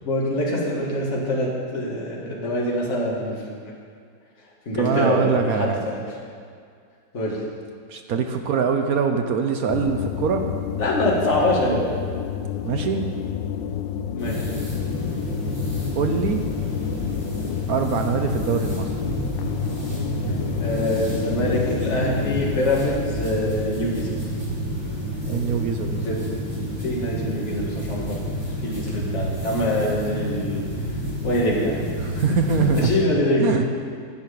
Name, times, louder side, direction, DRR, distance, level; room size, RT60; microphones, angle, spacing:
voice 1, 0.0-3.6 4.7-6.0 7.1-7.4 10.8-11.8 14.1-14.5 20.6-24.1 25.3-26.2 26.8-28.2 28.6-30.7 31.2-32.2 32.5-33.6, left 1 dB, 40° left, -4 dB, 2.1 m, -24 dB
voice 2, 4.7-5.8 7.9-10.5 12.6-13.1 15.9-16.4 17.7-19.0 25.3-26.0 32.0-32.9 33.4-33.7, right 6 dB, 65° right, 5 dB, 0.9 m, -23 dB
sound 1, 9.7-22.6, left 9 dB, 75° left, 1.2 m, -30 dB
sound 2, 14.2-32.9, equal, 15° right, 2.2 m, -29 dB
10.5 x 6.1 x 8.4 m, 2.2 s
omnidirectional pair, 2.1 m